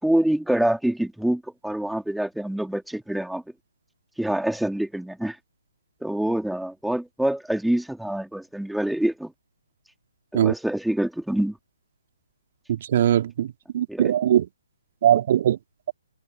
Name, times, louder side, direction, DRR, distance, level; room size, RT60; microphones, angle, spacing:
voice 1, 0.0-3.4 4.2-5.4 6.0-9.3 10.3-11.5 13.9-14.1, right 1 dB, ahead, 3.7 m, -26 dB
voice 2, 12.7-14.5 15.0-15.6, right 11 dB, 45° right, 2.5 m, -21 dB
figure-of-eight pair, 135°, 0 cm